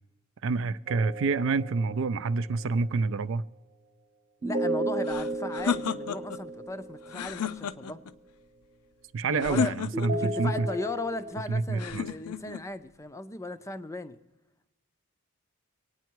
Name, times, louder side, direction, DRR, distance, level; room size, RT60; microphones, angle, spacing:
voice 1, 0.4-3.4 9.1-10.7 11.5-12.0, right 4 dB, 55° right, 15 dB, 0.4 m, -28 dB
sound 1, 0.9-2.4 4.4-7.6 9.9-11.3, right 1 dB, 35° right, 1.0 m, -34 dB
voice 2, 4.4-8.0 9.3-9.8 10.1-14.2, left 1 dB, 15° left, 11 dB, 0.5 m, -37 dB
sound 2, 5.0-6.4 7.1-8.1 9.4-10.3 11.8-12.6, left 7 dB, 80° left, 0.5 m, -32 dB
24.0 x 9.3 x 4.6 m, 1.0 s
head